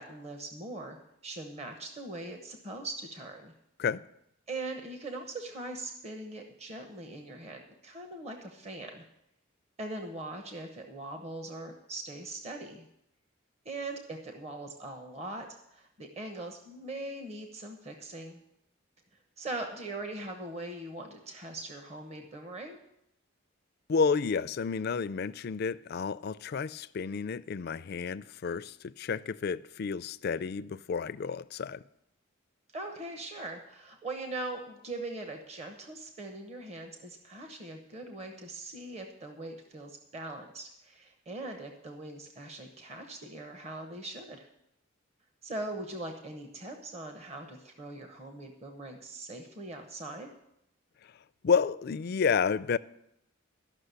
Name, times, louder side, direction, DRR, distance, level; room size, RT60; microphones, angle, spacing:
voice 1, 0.0-3.5 4.5-9.1 9.8-12.9 13.6-18.4 19.4-22.8 32.7-44.5 45.4-50.3, right 2 dB, 30° right, 1.0 m, -41 dB
voice 2, 23.9-31.8 51.0-51.1 51.4-52.8, left 5 dB, 50° left, 0.4 m, -30 dB
13.0 x 6.1 x 8.1 m
head